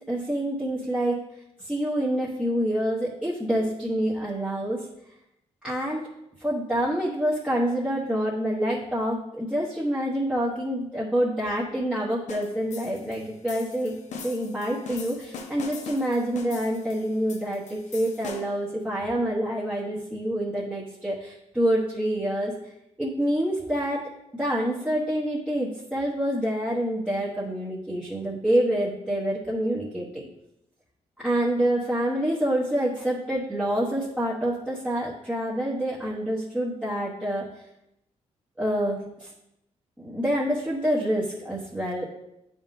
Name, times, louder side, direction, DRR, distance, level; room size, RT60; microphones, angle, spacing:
voice 1, 0.1-1.2 1.6-4.9 5.6-6.0 6.4-13.9 14.2-22.5 23.0-30.2 31.2-37.5 38.6-39.3 40.0-42.0, right 1 dB, 5° right, -7 dB, 1.1 m, -27 dB
sound 1, 12.3-18.7, left 4 dB, 70° left, 0.7 m, -41 dB
9.4 x 3.6 x 2.7 m, 0.84 s
cardioid pair, 95°, 12 cm